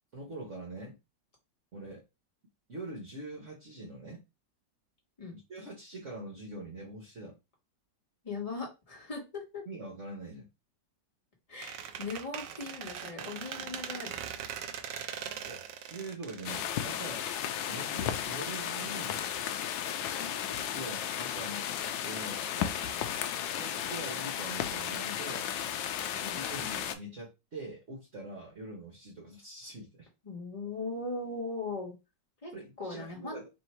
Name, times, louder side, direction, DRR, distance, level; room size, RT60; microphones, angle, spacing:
voice 1, 0.1-1.0 1.7-2.0 2.7-4.2 5.3-7.4 9.7-10.5 15.4-17.2 17.7-19.2 20.7-21.7 22.0-22.8 23.3-25.5 26.3-30.1 32.5-33.5, right 2 dB, 45° right, -1 dB, 1.3 m, -44 dB
voice 2, 8.2-9.6 11.5-14.1 20.2-20.9 26.2-26.4 30.2-31.9 32.4-32.5 32.8-33.4, left 3 dB, 20° left, -2 dB, 1.5 m, -39 dB
Squeak, 11.6-17.4, right 8 dB, 85° right, 1.3 m, -41 dB
sound 1, 16.4-26.9, left 9 dB, 85° left, 1.3 m, -34 dB
3.5 x 2.7 x 4.3 m, 0.25 s
omnidirectional pair, 2.0 m